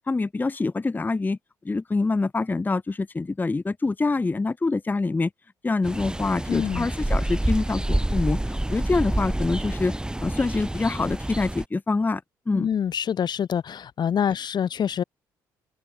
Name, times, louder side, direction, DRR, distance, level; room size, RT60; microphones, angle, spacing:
voice 1, 0.1-1.4 1.6-5.3 5.6-8.4 8.7-9.9 10.2-12.2 12.5-12.7, left 3 dB, 20° left, 0.6 m, -25 dB
sound 1, 5.8-11.7, right 1 dB, 10° right, 2.4 m, -27 dB
voice 2, 6.5-6.9 12.5-15.0, left 8 dB, 55° left, 0.9 m, -26 dB
open air
supercardioid pair, 60°, 9 cm